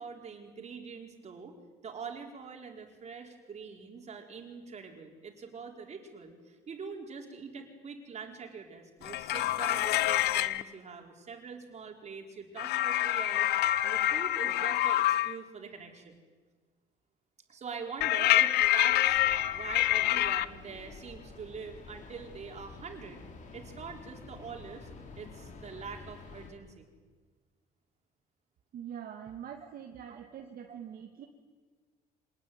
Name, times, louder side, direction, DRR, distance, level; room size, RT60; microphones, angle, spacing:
voice 1, 0.0-1.6 1.8-13.5 13.8-16.2 17.5-19.2 19.5-23.2 23.5-24.9 25.1-26.9 30.1-30.2 30.7-30.8, right 5 dB, 40° right, 3 dB, 4.7 m, -44 dB
sound 1, 9.0-10.6 12.6-15.4 18.0-20.5, left 14 dB, 75° left, 0.9 m, -27 dB
sound 2, 19.0-26.5, left 4 dB, 50° left, 4.6 m, -49 dB
voice 2, 28.7-31.3, right 9 dB, 60° right, 3 dB, 2.2 m, -44 dB
25.5 x 19.5 x 9.4 m, 1.4 s
cardioid pair, 110°, 17 cm